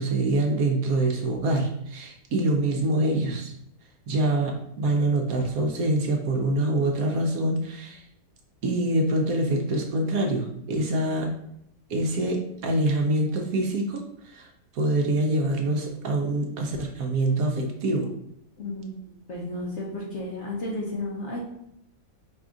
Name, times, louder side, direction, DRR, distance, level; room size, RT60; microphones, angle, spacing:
voice 1, 0.0-3.5 4.1-8.1 8.6-11.3 11.9-18.1, right 1 dB, 65° right, 2 dB, 1.0 m, -25 dB
voice 2, 18.6-18.9 19.3-21.4, left 2 dB, 60° left, -2 dB, 0.8 m, -32 dB
4.9 x 2.4 x 3.7 m, 0.76 s
omnidirectional pair, 1.8 m